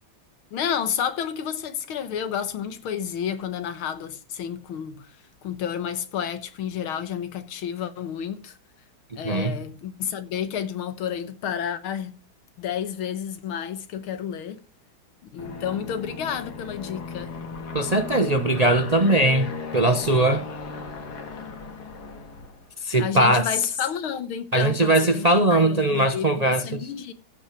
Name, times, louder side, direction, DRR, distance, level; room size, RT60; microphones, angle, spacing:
voice 1, 0.5-5.1 5.4-8.6 9.2-12.2 12.6-14.6 15.3-17.4 23.0-27.1, left 8 dB, 85° left, 2.0 m, -30 dB
Aircraft, 15.4-22.7, left 4 dB, 50° left, 2.2 m, -36 dB
voice 2, 17.7-20.4 22.8-23.5 24.5-26.9, right 2 dB, 60° right, 0.4 m, -20 dB
14.5 x 5.9 x 5.8 m
omnidirectional pair, 2.3 m